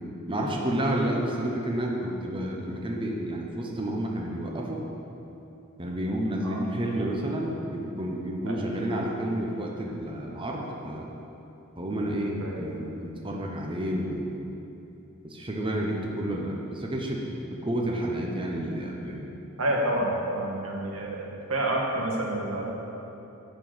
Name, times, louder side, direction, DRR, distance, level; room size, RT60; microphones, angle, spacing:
voice 1, 0.3-4.8 5.8-11.1 11.8-14.3 15.2-19.2, right 1 dB, 25° right, -1 dB, 0.8 m, -30 dB
voice 2, 19.6-22.7, right 1 dB, 85° right, -2 dB, 1.7 m, -29 dB
11.0 x 4.6 x 7.7 m, 2.9 s
head